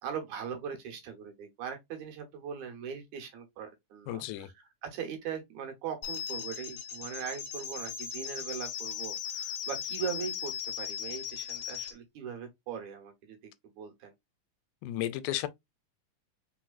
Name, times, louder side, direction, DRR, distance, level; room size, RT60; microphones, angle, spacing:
voice 1, 0.0-13.5 13.8-14.1, right 7 dB, 75° right, 2.5 m, -40 dB
voice 2, 4.1-4.5 14.8-15.5, left 13 dB, 90° left, 2.1 m, -33 dB
sound 1, 6.0-11.9, left 8 dB, 70° left, 1.2 m, -38 dB
4.5 x 3.8 x 2.4 m
omnidirectional pair, 3.6 m